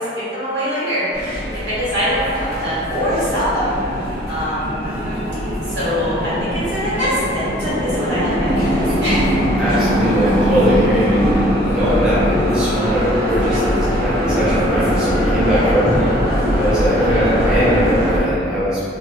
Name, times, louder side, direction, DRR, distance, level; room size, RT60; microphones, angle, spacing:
voice 1, 0.0-4.7 5.7-9.4 9.7-9.8 15.5-15.7, equal, 85° right, -12 dB, 1.4 m, -23 dB
sound 1, 1.1-18.2, equal, 65° right, 1.2 m, -20 dB
voice 2, 9.6-11.3 11.7-16.0 16.6-18.8, equal, 5° right, -12 dB, 0.5 m, -20 dB
2.8 x 2.3 x 2.2 m, 2.6 s
head